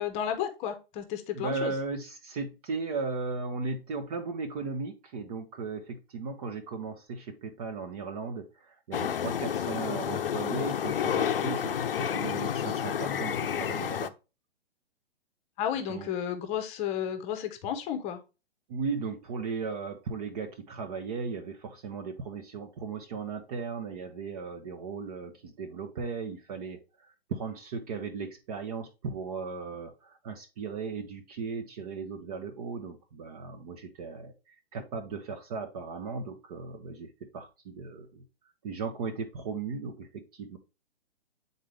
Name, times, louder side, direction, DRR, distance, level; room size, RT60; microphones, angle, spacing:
voice 1, 0.0-1.7 15.6-18.2, left 9 dB, 20° left, 8 dB, 0.9 m, -32 dB
voice 2, 1.3-14.1 15.9-16.1 18.7-38.2 38.6-40.6, right 4 dB, 35° right, 5 dB, 0.9 m, -37 dB
sound 1, 8.9-14.1, left 8 dB, 60° left, 0.7 m, -30 dB
8.5 x 4.0 x 3.3 m, 0.29 s
figure-of-eight pair, 120°, 31 cm